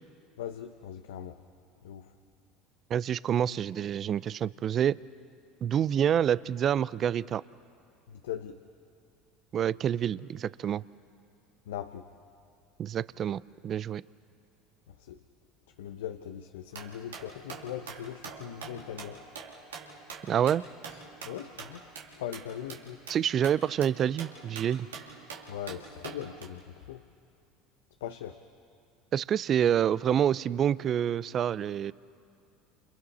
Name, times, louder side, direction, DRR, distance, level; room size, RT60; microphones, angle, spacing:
voice 1, 0.4-1.4 1.8-2.1 8.1-8.6 11.7-12.1 15.0-15.2 15.8-19.2 20.9-21.8 22.1-23.0 25.5-27.0 28.0-28.4, left 10 dB, 80° left, 8 dB, 0.8 m, -40 dB
voice 2, 2.9-5.0 5.6-7.4 9.5-10.8 12.8-14.0 20.3-20.6 23.1-24.9 29.1-31.9, right 9 dB, 45° right, 19 dB, 0.5 m, -27 dB
sound 1, 16.7-26.4, right 5 dB, 90° right, 2.6 m, -45 dB
29.5 x 28.5 x 4.2 m, 2.5 s
hypercardioid pair, 80°, 0 cm